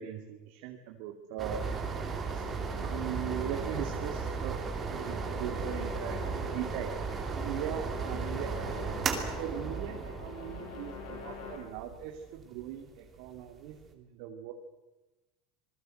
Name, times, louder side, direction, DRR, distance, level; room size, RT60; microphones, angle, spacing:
voice 1, 0.0-4.6 4.9-7.0 7.3-14.5, right 10 dB, 55° right, 3 dB, 2.7 m, -40 dB
sound 1, 1.4-13.8, right 5 dB, 20° right, 2.9 m, -36 dB
sound 2, 1.6-11.6, left 7 dB, 50° left, 6.3 m, -45 dB
27.0 x 20.5 x 7.9 m, 1.1 s
supercardioid pair, 170°, 0 cm